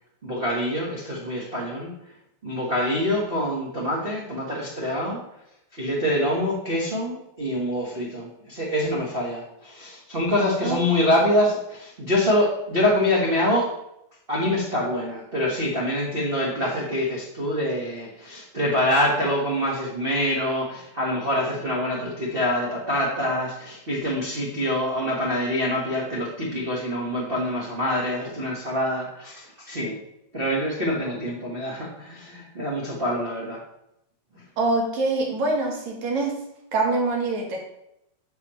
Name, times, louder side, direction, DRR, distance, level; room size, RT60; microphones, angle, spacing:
voice 1, 0.2-1.9 2.4-5.2 5.7-13.7 14.3-30.0 30.3-33.6, left 1 dB, 85° right, -5 dB, 0.5 m, -25 dB
voice 2, 34.6-36.4 36.7-37.6, right 2 dB, 70° right, 0 dB, 2.8 m, -24 dB
9.3 x 5.8 x 3.1 m, 0.82 s
omnidirectional pair, 3.4 m